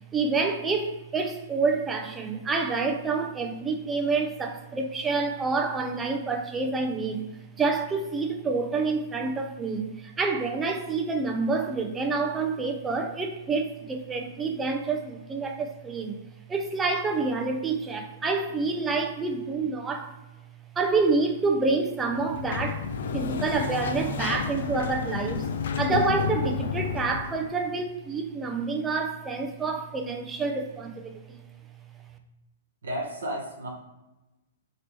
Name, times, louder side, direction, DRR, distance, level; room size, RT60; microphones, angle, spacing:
voice 1, 0.1-7.3 7.6-16.2 16.5-20.2 20.8-22.9 23.1-25.5 25.8-31.4, right 4 dB, 15° right, 0.5 m, -28 dB
Sliding door, 22.1-27.5, left 6 dB, 65° left, 0.3 m, -31 dB
voice 2, 32.8-33.7, right 1 dB, 75° right, 1.1 m, -32 dB
2.9 x 2.9 x 3.1 m
hypercardioid pair, 115°, 0 cm